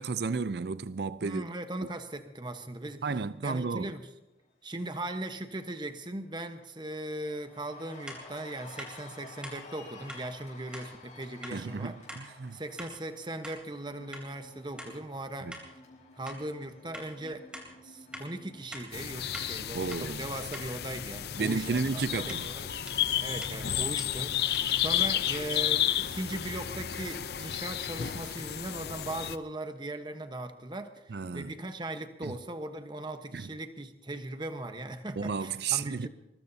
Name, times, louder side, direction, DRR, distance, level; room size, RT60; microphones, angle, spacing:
voice 1, 0.0-1.5 3.0-3.9 11.5-12.6 15.4-15.6 19.7-20.3 21.4-22.5 31.1-31.5 32.2-32.3 33.3-33.5 35.2-36.1, right 4 dB, 60° right, 0.5 m, -32 dB
voice 2, 1.2-3.1 3.4-4.1 4.6-12.0 12.5-15.5 16.2-17.5 17.8-22.7 23.1-36.1, right 1 dB, 25° right, 1.1 m, -39 dB
Cheering, 5.4-5.5 5.8-19.9, left 2 dB, 40° left, 4.9 m, -53 dB
sound 1, 8.1-8.2 8.8-8.9 9.4-9.6 10.1-10.2 10.7-10.9 11.4-11.6 12.1-12.2 12.8-12.9 13.4-13.6 14.1-14.3 14.8-14.9 15.5-15.7 16.3-16.4 16.9-17.1 17.5-17.7 18.1-18.3 18.7-18.9 19.3-19.5 19.9-20.0 20.5-20.7 21.7-25.0, equal, 5° right, 3.5 m, -45 dB
sound 2, 18.9-29.4, left 10 dB, 55° left, 0.6 m, -32 dB
23.5 x 22.0 x 2.8 m
head